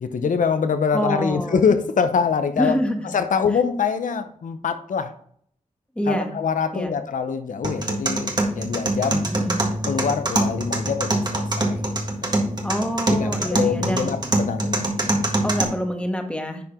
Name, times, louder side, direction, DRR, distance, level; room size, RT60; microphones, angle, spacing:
voice 1, 0.0-2.8 3.1-5.1 6.1-9.3 9.8-11.8 12.2-12.4 13.1-14.9 15.2-15.3, left 6 dB, 80° left, 9 dB, 0.7 m, -24 dB
voice 2, 0.9-1.6 2.6-3.1 5.9-6.3 6.7-7.0 9.3-9.6 12.6-14.1 15.4-16.6, equal, 10° left, 4 dB, 1.5 m, -26 dB
sound 1, 7.6-15.6, right 1 dB, 30° right, 1.6 m, -24 dB
10.5 x 4.7 x 3.7 m, 0.63 s
cardioid pair, 65°, 13 cm